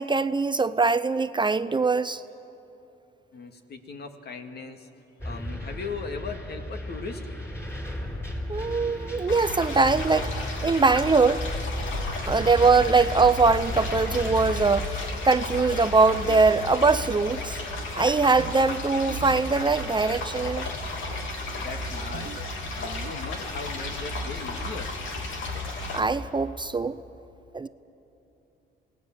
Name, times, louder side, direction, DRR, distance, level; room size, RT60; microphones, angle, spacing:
voice 1, 0.0-2.2 8.5-10.3 10.6-11.4 12.3-17.6 17.9-20.7 25.9-27.0 27.5-27.7, right 4 dB, 25° right, 14 dB, 0.6 m, -22 dB
voice 2, 3.3-4.9 5.2-7.2 21.6-22.4 22.8-24.9, left 4 dB, 55° left, 6 dB, 2.1 m, -38 dB
sound 1, 5.2-14.7, equal, 15° left, 4.9 m, -35 dB
sound 2, 9.3-26.0, left 2 dB, 75° left, 3.1 m, -33 dB
sound 3, 16.3-16.9 18.4-18.8 19.1-19.6 22.1-22.5, right 13 dB, 80° right, 0.7 m, -40 dB
27.0 x 18.5 x 7.4 m, 3.0 s
cardioid pair, 90°, 20 cm